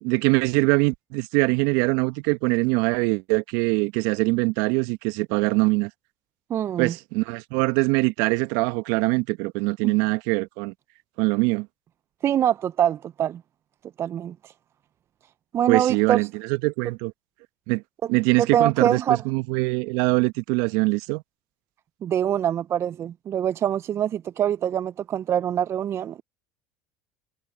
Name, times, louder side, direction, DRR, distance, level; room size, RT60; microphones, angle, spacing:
voice 1, 0.0-5.9 6.8-10.7 11.2-11.7 15.7-17.1 17.7-17.8 18.1-21.2, right 26 dB, 65° right, 1.4 m, -23 dB
voice 2, 6.5-6.9 9.8-9.9 12.2-13.4 14.0-14.5 15.5-16.3 18.4-19.2 22.0-26.2, right 10 dB, 40° right, 0.7 m, -24 dB
hypercardioid pair, 75°, 7 cm